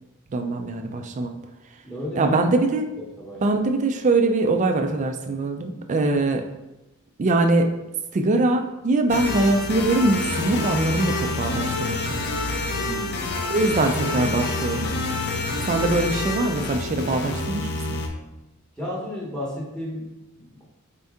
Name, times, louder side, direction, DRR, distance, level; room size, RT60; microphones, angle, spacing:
voice 1, 0.3-1.3 2.2-2.8 3.4-6.4 7.2-7.7 8.1-12.2 13.5-14.9 15.7-18.0, right 2 dB, 35° right, 5 dB, 0.3 m, -22 dB
voice 2, 1.8-2.4 3.2-3.6 12.8-13.3 18.8-20.6, left 1 dB, 5° left, -6 dB, 0.9 m, -33 dB
sound 1, 9.1-18.1, left 2 dB, 50° left, 0.5 m, -27 dB
4.4 x 2.7 x 3.5 m, 0.97 s
head